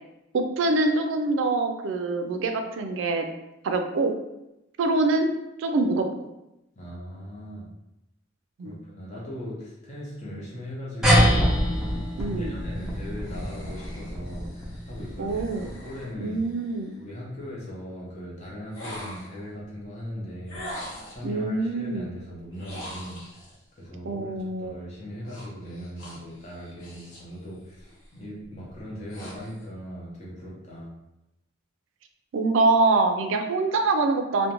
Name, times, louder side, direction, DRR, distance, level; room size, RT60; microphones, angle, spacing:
voice 1, 0.3-3.3 3.6-4.1 4.8-5.3 5.6-6.3 8.6-8.8 12.2-12.5 15.2-15.7 16.2-16.9 21.2-22.1 24.1-24.8 32.3-34.5, right 3 dB, 75° right, 5 dB, 0.3 m, -24 dB
voice 2, 6.8-7.7 8.6-11.6 12.3-16.4 16.9-23.4 23.8-30.9, equal, 35° left, -5 dB, 0.7 m, -39 dB
sound 1, 11.0-15.9, equal, 5° right, 0.5 m, -25 dB
sound 2, 12.7-17.0 18.7-19.5 20.5-21.3 22.5-23.6 25.2-27.3 27.7-28.1 28.6-29.7, equal, 90° left, 0.8 m, -43 dB
2.4 x 2.1 x 2.9 m, 0.91 s
head